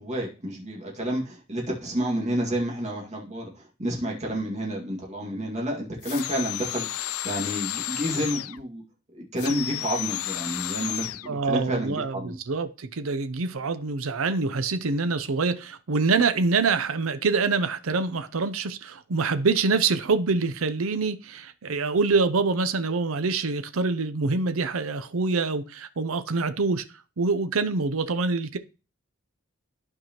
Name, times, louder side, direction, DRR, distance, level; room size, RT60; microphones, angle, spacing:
voice 1, 0.0-8.8 9.1-12.4, equal, 35° right, 2.1 m, -30 dB
sound 1, 6.0-8.6 9.4-11.3, left 14 dB, 85° left, 0.4 m, -32 dB
voice 2, 11.3-26.8 27.2-28.6, right 4 dB, 75° right, 0.6 m, -25 dB
12.0 x 4.8 x 3.0 m
head